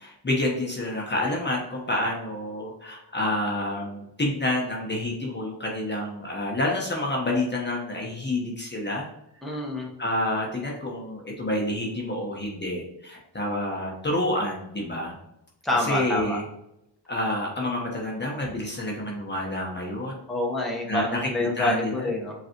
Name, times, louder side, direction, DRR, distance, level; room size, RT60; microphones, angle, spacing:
voice 1, 0.0-9.1 10.0-15.2 15.8-16.4 17.1-20.2 20.9-22.1, left 1 dB, 25° left, -2 dB, 1.1 m, -28 dB
voice 2, 9.4-9.9 15.6-16.4 20.3-22.3, left 1 dB, ahead, -2 dB, 1.2 m, -27 dB
5.2 x 3.2 x 3.0 m, 0.84 s
cardioid pair, 80°, 42 cm